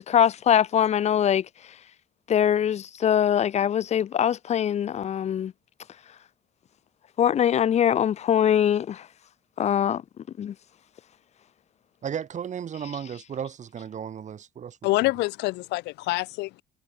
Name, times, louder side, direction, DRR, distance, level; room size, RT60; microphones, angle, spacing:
voice 1, 0.0-1.4 2.3-5.5 7.2-9.0 9.6-10.0 10.4-10.5, left 9 dB, 40° left, 0.7 m, -22 dB
voice 2, 12.0-15.1, right 8 dB, 45° right, 4.9 m, -35 dB
voice 3, 14.8-16.6, left 21 dB, 90° left, 1.7 m, -26 dB
cardioid pair, 110°, 17 cm